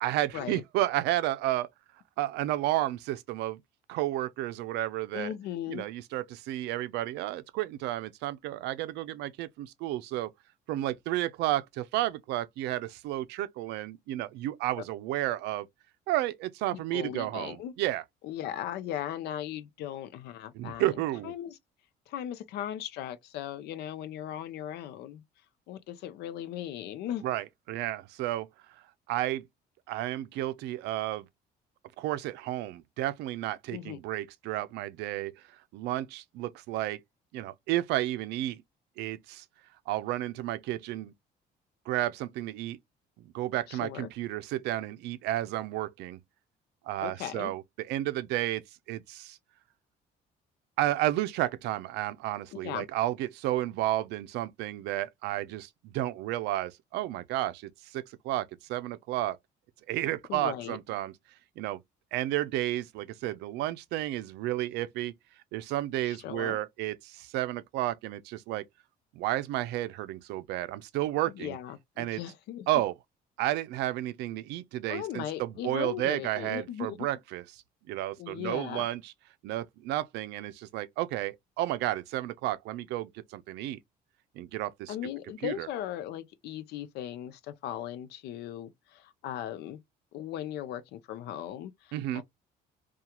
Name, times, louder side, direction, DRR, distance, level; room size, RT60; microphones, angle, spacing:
voice 1, 0.0-1.7 2.2-3.6 3.9-5.3 5.7-10.3 10.7-15.7 16.1-18.0 20.5-21.3 27.2-28.5 29.1-29.4 29.9-31.3 32.0-35.3 35.7-37.0 37.3-38.6 39.0-39.4 39.9-41.1 41.9-42.8 43.2-46.2 46.9-49.4 50.8-59.4 59.9-61.1 61.6-61.8 62.1-65.1 65.5-68.6 69.1-71.6 72.0-72.2 72.7-72.9 73.4-77.6 77.9-79.1 79.4-83.8 84.4-85.0 85.4-85.7 91.9-92.2, right 15 dB, 85° right, 0.4 m, -32 dB
voice 2, 5.1-5.9 16.7-17.7 18.2-20.9 21.2-21.6 22.1-25.2 25.7-27.2 33.7-34.0 43.7-44.1 47.0-47.5 52.5-52.9 60.3-60.8 66.0-66.6 71.3-72.7 74.9-77.1 78.2-78.9 84.9-89.8 90.1-92.2, left 11 dB, 80° left, 0.5 m, -38 dB
2.9 x 2.3 x 2.2 m
cardioid pair, 110°, 17 cm